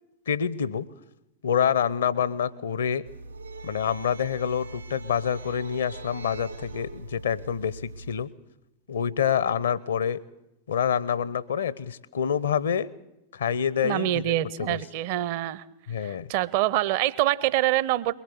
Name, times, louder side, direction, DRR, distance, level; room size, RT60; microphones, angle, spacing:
voice 1, 0.3-0.8 1.4-3.0 3.6-8.3 8.9-10.2 10.7-12.9 13.3-14.8 15.9-16.3, left 8 dB, 65° left, 19 dB, 0.7 m, -27 dB
sound 1, 3.1-8.1, right 3 dB, 80° right, 2.8 m, -42 dB
voice 2, 13.8-15.6 16.0-18.2, right 14 dB, 50° right, 19 dB, 0.7 m, -25 dB
22.0 x 19.5 x 7.1 m, 0.93 s
figure-of-eight pair, 90°, 0 cm